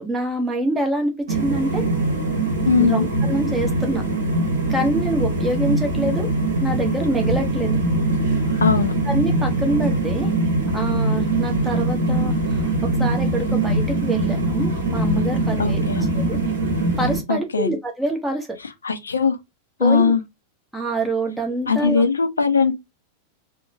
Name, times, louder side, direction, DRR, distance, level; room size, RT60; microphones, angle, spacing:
voice 1, 0.0-1.9 2.8-4.0 4.7-6.3 6.6-7.8 9.1-10.3 10.7-12.7 13.0-15.8 16.1-16.4 17.0-18.5 19.8-20.1 20.7-22.1, right 1 dB, 5° right, 0.9 m, -25 dB
sound 1, 1.3-17.2, right 2 dB, 60° right, 0.9 m, -22 dB
voice 2, 2.7-3.1 8.6-8.9 15.6-16.1 17.3-17.7 18.8-19.4 19.8-20.2 21.7-22.7, left 5 dB, 75° left, 0.4 m, -19 dB
2.9 x 2.1 x 2.6 m
figure-of-eight pair, 90°, 0 cm